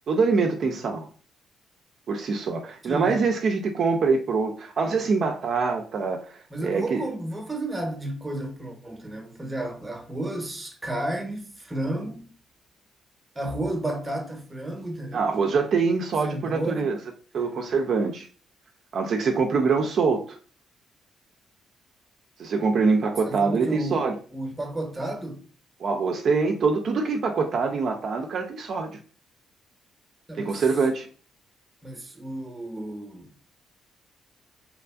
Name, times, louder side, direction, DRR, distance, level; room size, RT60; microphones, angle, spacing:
voice 1, 0.1-1.1 2.1-6.3 6.6-7.1 15.1-17.0 17.3-18.3 18.9-20.4 22.4-24.1 25.8-29.0 30.4-31.1, right 4 dB, 60° right, 0.3 m, -24 dB
voice 2, 2.8-3.2 6.5-12.3 13.3-15.3 16.2-16.9 23.3-25.5 30.3-30.7 31.8-33.3, right 1 dB, 15° right, 0.7 m, -32 dB
2.9 x 2.4 x 2.3 m
cardioid pair, 90°, 0 cm